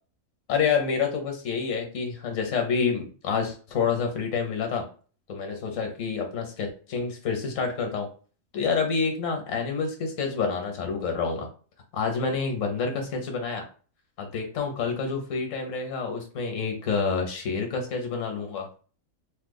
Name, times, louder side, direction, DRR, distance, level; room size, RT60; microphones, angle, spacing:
voice 1, 0.5-4.9 5.3-8.1 8.5-11.5 11.9-13.6 14.2-18.7, left 5 dB, 75° left, 4 dB, 1.2 m, -28 dB
3.1 x 2.2 x 3.6 m, 0.39 s
omnidirectional pair, 1.4 m